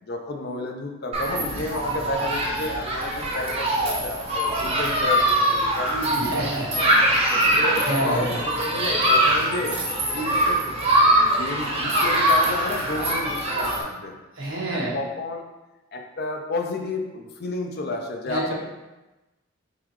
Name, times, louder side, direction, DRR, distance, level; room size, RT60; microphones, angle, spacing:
voice 1, 0.0-6.6 7.6-10.7 11.1-14.2 14.7-15.4 15.9-18.5, left 2 dB, 45° left, 3 dB, 0.5 m, -31 dB
Human group actions, 1.1-13.8, right 1 dB, 30° right, 0.6 m, -22 dB
voice 2, 6.2-6.7 7.2-7.6 7.8-8.4 14.3-14.9 18.3-18.5, right 1 dB, 65° right, -4 dB, 1.1 m, -28 dB
3.8 x 3.7 x 3.1 m, 1.1 s
head